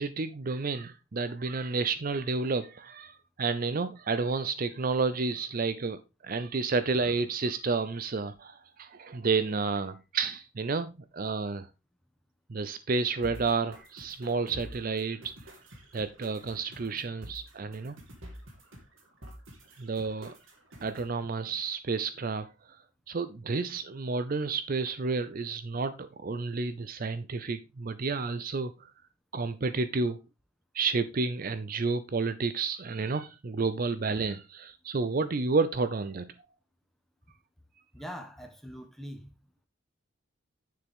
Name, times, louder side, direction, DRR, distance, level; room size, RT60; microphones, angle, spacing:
voice 1, 0.0-11.7 12.5-15.2 15.9-18.0 19.8-20.3 20.8-22.5 23.1-28.9 29.3-30.2 30.7-36.3, right 4 dB, 40° right, 0.5 m, -31 dB
sound 1, 13.2-21.2, equal, 70° right, 2.5 m, -49 dB
voice 2, 37.9-39.3, equal, ahead, 1.2 m, -42 dB
9.5 x 6.9 x 3.6 m
head